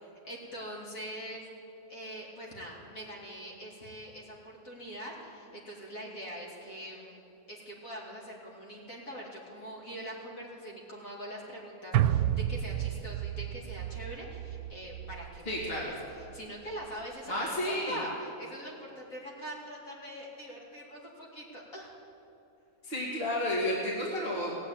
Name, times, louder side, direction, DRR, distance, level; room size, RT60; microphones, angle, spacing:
voice 1, 0.0-1.4 1.9-7.2 7.5-21.9, equal, 65° left, -3 dB, 3.1 m, -43 dB
sound 1, 11.9-16.4 16.7-16.8, right 11 dB, 85° right, 1.1 m, -31 dB
voice 2, 15.5-15.9 17.3-18.0 22.8-24.5, left 1 dB, 40° left, -4 dB, 2.6 m, -31 dB
18.0 x 7.7 x 8.8 m, 2.7 s
omnidirectional pair, 1.6 m